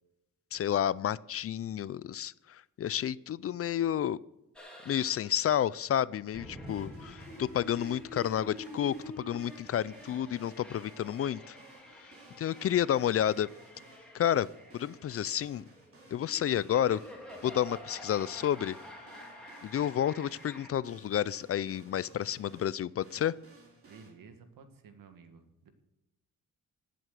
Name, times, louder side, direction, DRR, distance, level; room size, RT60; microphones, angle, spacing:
voice 1, 0.5-4.2 4.9-11.6 12.4-13.5 14.1-14.5 14.7-15.6 16.1-17.0 17.4-18.7 19.6-23.4, left 10 dB, 45° left, 21 dB, 0.4 m, -30 dB
sound 1, 4.6-20.7, equal, 5° left, 3.3 m, -48 dB
sound 2, 6.7-24.1, right 3 dB, 40° right, 4.1 m, -58 dB
voice 2, 23.9-25.7, right 5 dB, 85° right, 8 dB, 1.9 m, -53 dB
17.5 x 7.8 x 6.7 m, 0.92 s
cardioid pair, 115°, 33 cm